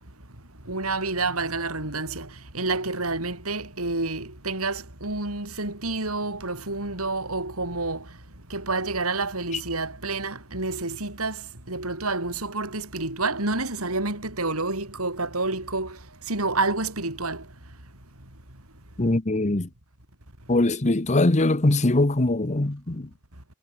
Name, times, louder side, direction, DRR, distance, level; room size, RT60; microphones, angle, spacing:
voice 1, 0.7-2.3 2.5-8.1 8.5-16.0 16.3-17.5, right 3 dB, 80° right, 7.1 m, -29 dB
voice 2, 19.0-19.7 20.5-23.1, left 2 dB, 35° left, 1.1 m, -22 dB
head